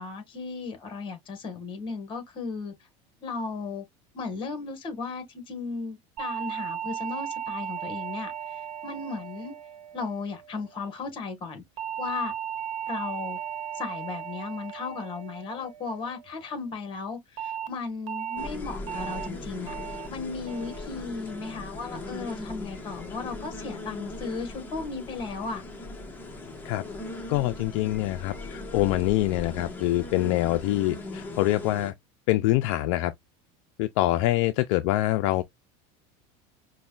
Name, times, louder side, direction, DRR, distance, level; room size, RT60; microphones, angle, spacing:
voice 1, 0.0-2.7 3.2-3.8 4.1-9.5 9.9-11.6 12.0-12.3 12.9-13.4 13.7-19.7 20.1-25.6, left 4 dB, 30° left, 1.3 m, -35 dB
sound 1, 6.2-10.6 11.8-16.2 17.4-17.7 18.1-18.5 18.9-19.3 19.7-20.1 20.5-20.9 21.3-21.7, right 9 dB, 80° right, 1.1 m, -36 dB
sound 2, 18.4-31.9, left 2 dB, 10° left, 0.9 m, -39 dB
voice 2, 27.3-31.9 32.3-33.1 33.8-35.4, left 16 dB, 65° left, 0.4 m, -25 dB
5.2 x 2.2 x 2.3 m
supercardioid pair, 140°, 17 cm